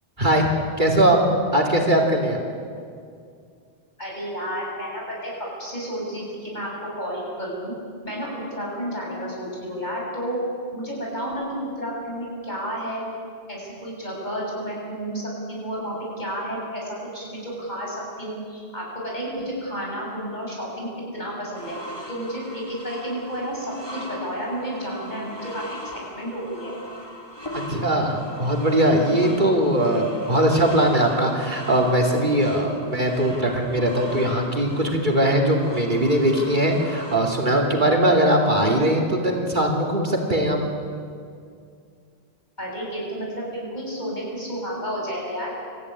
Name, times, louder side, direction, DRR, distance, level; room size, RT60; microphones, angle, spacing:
voice 1, 0.2-0.5 0.8-1.2 1.5-2.4 27.5-40.7, right 1 dB, 50° right, 1 dB, 2.9 m, -20 dB
voice 2, 4.0-5.3 5.6-6.7 7.0-7.7 8.0-10.4 10.7-13.0 13.5-21.8 22.1-26.8 42.6-45.5, equal, 45° left, -3 dB, 7.3 m, -31 dB
sound 1, 21.5-37.2, left 1 dB, 25° left, 3.3 m, -39 dB
26.5 x 14.5 x 9.8 m, 2.3 s
omnidirectional pair, 1.1 m